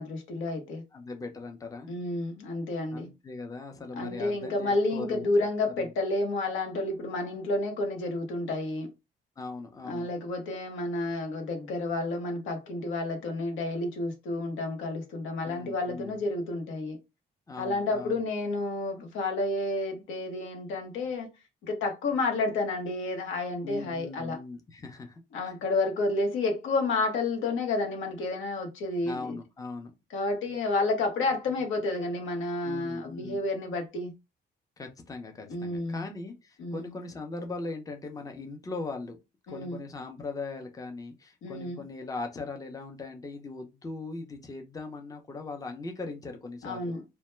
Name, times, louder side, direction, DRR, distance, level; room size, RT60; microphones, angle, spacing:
voice 1, 0.0-0.8 1.9-3.1 4.0-8.9 9.8-17.0 17.6-21.3 21.6-24.4 25.3-29.4 30.1-34.1 35.5-36.1 36.6-36.9 39.5-39.8 41.4-41.8 46.6-47.0, left 2 dB, 85° left, 0.9 m, -30 dB
voice 2, 0.9-1.9 2.9-5.2 5.8-5.9 9.4-10.1 15.5-16.2 17.5-18.2 23.6-25.5 29.0-29.9 32.6-33.4 34.8-39.2 39.5-46.8, left 3 dB, 15° left, 0.6 m, -39 dB
2.2 x 2.1 x 3.0 m
cardioid pair, 90°, 20 cm